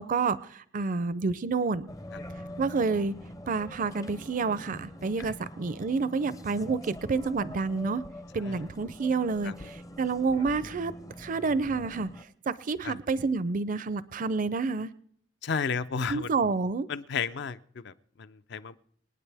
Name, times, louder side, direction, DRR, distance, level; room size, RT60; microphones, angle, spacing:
voice 1, 0.0-1.9 2.6-3.1 3.5-8.0 8.3-14.9 16.1-16.9, right 4 dB, 45° right, 16 dB, 0.4 m, -29 dB
sound 1, 1.9-12.2, left 1 dB, 20° left, 0.5 m, -44 dB
voice 2, 15.4-16.3 16.9-18.8, left 5 dB, 65° left, 14 dB, 0.5 m, -33 dB
27.0 x 9.3 x 3.4 m, 0.63 s
head